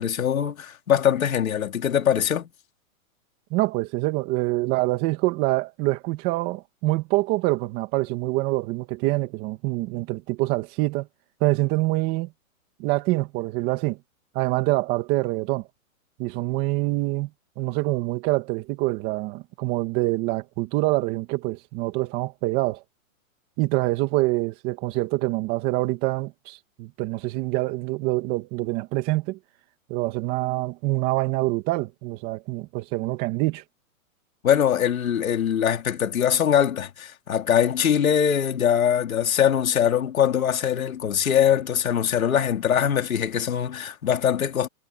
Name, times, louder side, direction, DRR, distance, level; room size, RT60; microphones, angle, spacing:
voice 1, 0.0-2.5 34.4-44.7, left 9 dB, 75° left, 4.0 m, -22 dB
voice 2, 3.5-11.1 11.4-12.3 12.8-14.0 14.3-15.6 16.2-17.3 17.6-22.8 23.6-29.4 29.9-33.6, right 20 dB, 20° right, 2.4 m, -25 dB
hypercardioid pair, 165°, 42 cm